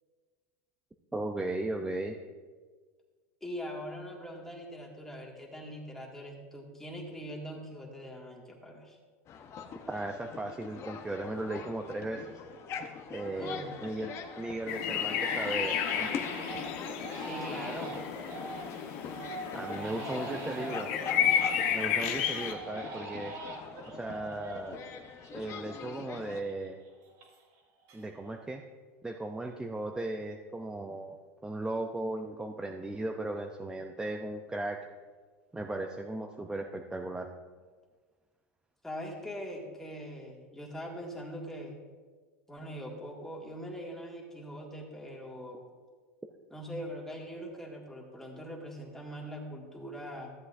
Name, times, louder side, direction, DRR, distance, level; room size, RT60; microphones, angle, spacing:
voice 1, 1.1-2.2 9.9-12.2 13.1-16.1 19.5-20.9 21.7-23.3 23.9-25.0 25.3-26.8 27.9-28.6 29.0-34.8 35.5-37.3, right 2 dB, 10° right, 2 dB, 0.5 m, -36 dB
voice 2, 3.4-9.0 13.3-13.9 17.2-18.0 19.7-21.0 38.8-41.8 42.5-45.6 46.5-50.3, equal, 5° left, -2 dB, 1.9 m, -42 dB
sound 1, 9.3-26.4, left 6 dB, 40° left, 0.8 m, -43 dB
Crying sobbing, 11.9-12.0 12.5-12.9 13.3-14.2 14.5-14.6 15.1-22.0 22.5-25.8 26.1-27.6 27.9-28.4, right 3 dB, 60° right, 2.1 m, -44 dB
sound 2, 14.7-22.5, left 8 dB, 65° left, 1.1 m, -32 dB
14.0 x 7.9 x 2.6 m, 1.5 s
supercardioid pair, 120°, 7 cm